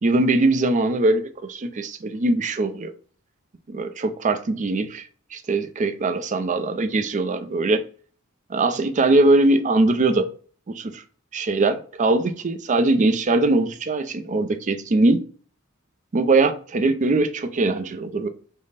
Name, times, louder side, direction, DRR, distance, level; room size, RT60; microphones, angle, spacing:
voice 1, 0.0-2.9 3.7-7.8 8.5-10.3 10.7-11.0 11.3-15.2 16.1-18.3, right 2 dB, 35° right, 0.4 m, -21 dB
5.2 x 2.1 x 4.0 m
head